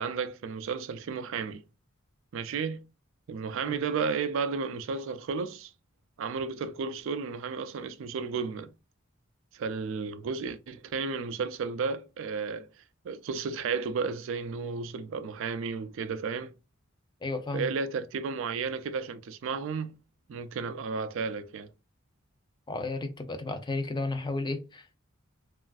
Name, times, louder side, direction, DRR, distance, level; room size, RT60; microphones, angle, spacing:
voice 1, 0.0-1.6 2.3-2.8 3.3-5.7 6.2-8.7 9.5-16.5 17.5-20.0 20.3-21.7, right 5 dB, 65° right, 0.4 m, -33 dB
voice 2, 17.2-17.7 22.7-25.0, left 3 dB, 20° left, 0.5 m, -33 dB
3.2 x 2.4 x 2.3 m
head